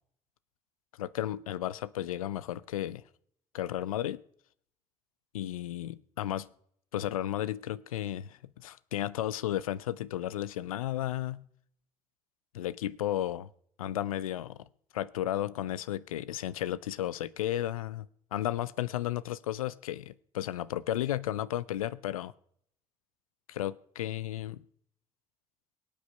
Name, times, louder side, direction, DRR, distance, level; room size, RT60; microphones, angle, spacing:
voice 1, 1.0-3.0 3.5-4.2 5.3-6.5 6.9-11.4 12.5-13.5 13.8-14.6 14.9-22.3 23.5-24.6, left 12 dB, 85° left, 0.5 m, -33 dB
23.0 x 8.6 x 5.6 m
figure-of-eight pair, 40°, 18 cm